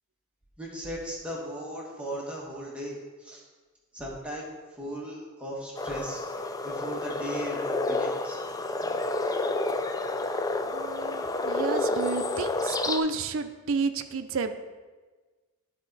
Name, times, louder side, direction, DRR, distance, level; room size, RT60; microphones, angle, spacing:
voice 1, 0.6-3.4 3.9-4.5 4.8-8.4, equal, 5° right, -4 dB, 1.3 m, -37 dB
sound 1, 5.8-13.0, left 2 dB, 15° left, 0.3 m, -30 dB
voice 2, 10.7-14.5, right 4 dB, 70° right, 9 dB, 0.5 m, -31 dB
10.5 x 4.4 x 4.0 m, 1.3 s
head